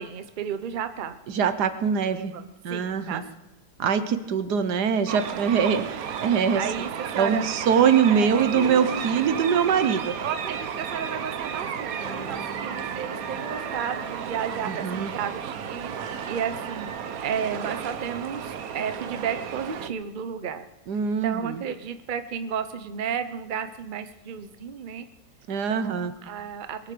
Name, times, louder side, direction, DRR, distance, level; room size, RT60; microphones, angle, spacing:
voice 1, 0.0-1.2 2.1-3.2 6.6-7.5 8.0-8.5 10.2-15.9 16.3-16.9 17.2-20.7 21.2-25.1 25.7-26.9, right 7 dB, 40° right, 10 dB, 0.9 m, -33 dB
voice 2, 1.3-2.3 2.6-3.2 3.8-6.6 7.2-10.2 14.7-15.1 20.9-21.6 25.5-26.1, right 7 dB, 85° right, 11 dB, 1.6 m, -23 dB
sound 1, 5.1-19.9, right 7 dB, 65° right, 1.3 m, -33 dB
sound 2, 8.5-11.3 12.0-15.2, right 1 dB, 20° left, 3.8 m, -40 dB
22.0 x 8.2 x 6.8 m, 0.96 s
omnidirectional pair, 1.7 m